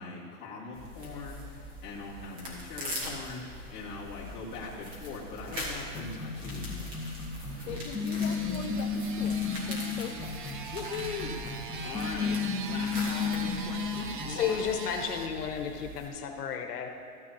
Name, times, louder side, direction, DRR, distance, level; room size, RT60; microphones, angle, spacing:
voice 1, 0.0-1.4 1.8-3.4 3.7-6.9 7.5-7.7 10.7-11.4 11.8-14.7, left 4 dB, 25° left, -7 dB, 1.9 m, -41 dB
sound 1, 0.7-16.1, left 1 dB, 20° right, 1.4 m, -42 dB
sound 2, 5.9-14.4, left 5 dB, ahead, 1.2 m, -33 dB
sound 3, 7.5-15.3, right 5 dB, 35° right, 0.4 m, -42 dB
voice 2, 7.7-10.3, left 9 dB, 60° left, 5 dB, 0.6 m, -42 dB
voice 3, 14.3-16.9, left 7 dB, 85° left, 3 dB, 1.2 m, -32 dB
14.5 x 9.5 x 2.8 m, 2.6 s
supercardioid pair, 165°, 46 cm